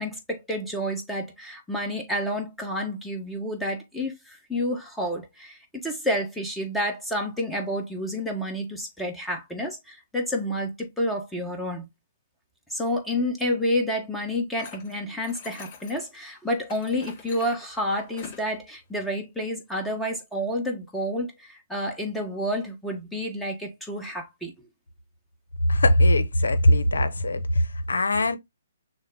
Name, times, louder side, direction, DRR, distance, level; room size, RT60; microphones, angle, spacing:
voice 1, 0.0-11.9 12.7-24.7, equal, 5° left, 1.2 m, -29 dB
sound 1, 14.6-16.2 16.7-18.5, left 6 dB, 40° left, 2.9 m, -45 dB
voice 2, 25.7-28.4, left 1 dB, 75° left, 0.7 m, -21 dB
6.5 x 2.2 x 3.7 m
figure-of-eight pair, 130°, 0 cm